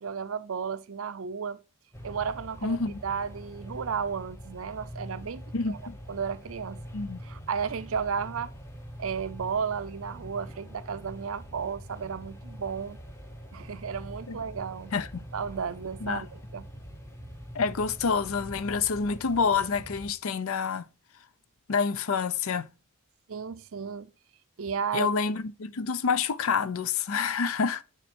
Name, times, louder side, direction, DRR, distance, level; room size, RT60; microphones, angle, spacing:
voice 1, 0.0-1.6 2.0-2.8 3.0-5.8 6.1-6.8 7.2-8.5 9.0-13.0 13.5-14.9 15.3-16.7 23.3-24.1 24.6-25.1, right 6 dB, 65° right, 0.5 m, -33 dB
sound 1, 1.9-20.1, equal, 10° left, 0.8 m, -44 dB
voice 2, 2.6-3.0 5.5-6.0 6.9-7.2 14.3-14.4 14.9-15.2 16.0-16.2 17.5-20.9 21.7-22.7 24.9-27.8, left 5 dB, 70° left, 0.6 m, -28 dB
9.0 x 4.5 x 4.3 m
head